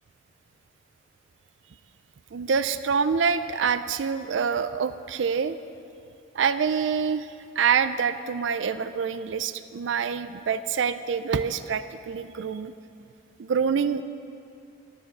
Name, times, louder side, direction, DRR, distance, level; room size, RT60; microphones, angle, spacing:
voice 1, 2.3-5.6 6.3-7.3 7.6-12.7 13.4-14.0, right 6 dB, 75° right, 13 dB, 0.4 m, -26 dB
13.0 x 9.0 x 6.7 m, 2.6 s
head